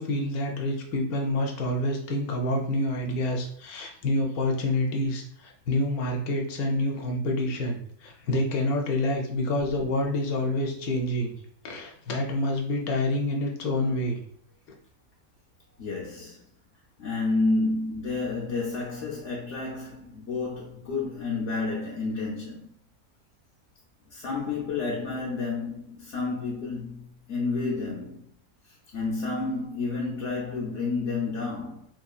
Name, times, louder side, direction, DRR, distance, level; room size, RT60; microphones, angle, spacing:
voice 1, 0.0-11.3 11.6-14.2, left 1 dB, 85° left, 1.1 m, -27 dB
voice 2, 15.8-16.4 17.0-22.7 24.1-28.3 28.9-31.9, left 3 dB, 60° left, 0.9 m, -30 dB
3.1 x 2.8 x 2.3 m
omnidirectional pair, 1.5 m